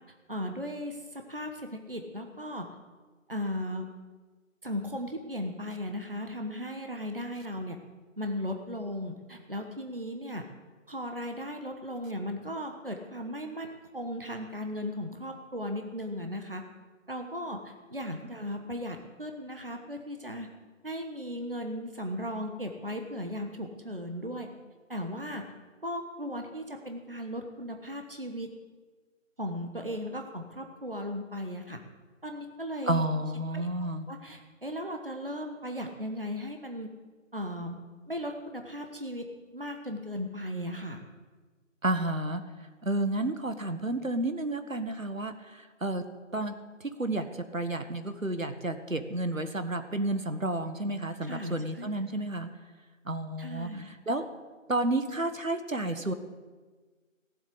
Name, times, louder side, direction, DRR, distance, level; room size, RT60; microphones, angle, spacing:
voice 1, 0.3-2.7 3.3-3.9 4.6-7.8 8.2-10.5 10.9-16.6 17.1-20.5 20.8-24.5 24.9-25.4 25.8-28.5 29.4-31.8 32.2-33.0 33.5-36.9 37.3-37.8 38.1-41.0 51.2-51.9 53.4-53.9, equal, 45° right, 4 dB, 1.2 m, -37 dB
voice 2, 32.9-34.1 41.8-42.4 42.8-46.0 46.3-46.5 46.8-52.5 53.0-54.2 54.7-56.1, right 1 dB, 80° right, 9 dB, 1.6 m, -31 dB
17.5 x 7.6 x 8.3 m, 1.4 s
figure-of-eight pair, 175°, 39 cm